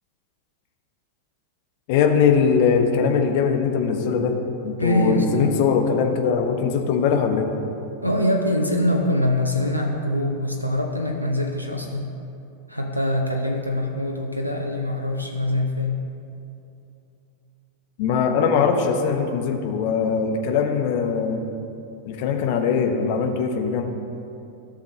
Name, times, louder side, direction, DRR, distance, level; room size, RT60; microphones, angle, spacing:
voice 1, 1.9-4.3 4.6-7.6 18.0-21.4 22.1-23.8, left 6 dB, 50° left, 4 dB, 0.8 m, -21 dB
voice 2, 4.8-5.5 8.0-12.1 12.7-16.0, left 1 dB, 90° right, 2 dB, 0.6 m, -23 dB
14.0 x 6.4 x 2.7 m, 2.8 s
figure-of-eight pair, 90°, 0 cm